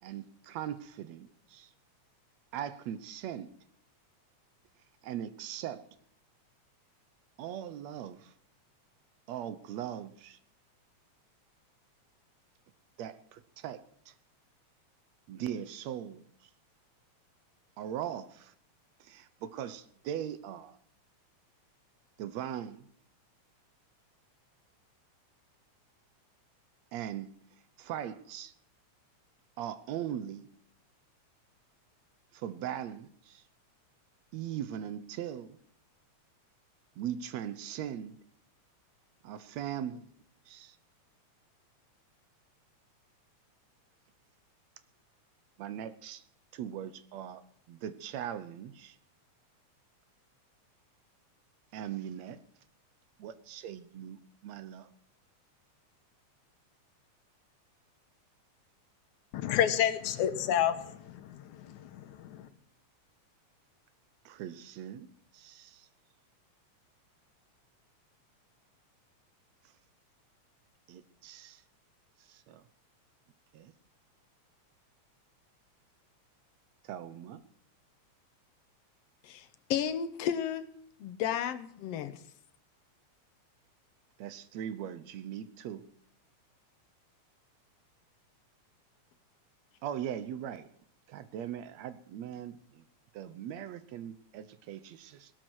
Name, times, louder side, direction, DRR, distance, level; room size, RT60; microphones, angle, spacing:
voice 1, 0.0-1.7 2.5-3.5 5.0-5.8 7.4-8.3 9.3-10.4 13.0-14.1 15.3-16.3 17.8-18.5 19.0-20.8 22.2-22.9 26.9-27.3 27.8-28.5 29.6-30.5 32.3-33.4 34.3-35.6 37.0-38.2 39.2-40.1 40.5-40.8 45.6-46.2 46.5-47.4 47.7-49.0 51.7-52.4 53.2-54.9 64.3-65.1 65.3-65.9 70.9-71.6 72.3-72.6 73.5-73.7 76.8-77.4 84.2-85.8 89.8-90.7 91.1-92.8 93.1-95.3, right 10 dB, 70° right, 13 dB, 2.0 m, -40 dB
voice 2, 59.3-62.5, left 10 dB, 90° left, 10 dB, 2.4 m, -30 dB
voice 3, 79.2-80.7 81.0-82.2, left 9 dB, 65° left, 10 dB, 1.8 m, -33 dB
18.0 x 12.5 x 6.2 m, 0.65 s
omnidirectional pair, 3.3 m